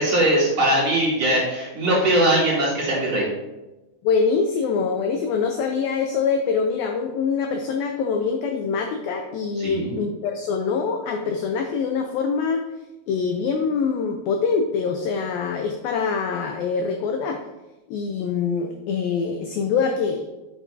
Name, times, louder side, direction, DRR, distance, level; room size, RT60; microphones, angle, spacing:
voice 1, 0.0-3.3 9.6-9.9, right 1 dB, 40° right, -7 dB, 3.3 m, -20 dB
voice 2, 4.0-12.6 13.1-17.4 17.9-20.3, left 5 dB, 85° left, 4 dB, 2.1 m, -24 dB
9.8 x 7.3 x 2.7 m, 1.0 s
omnidirectional pair, 5.0 m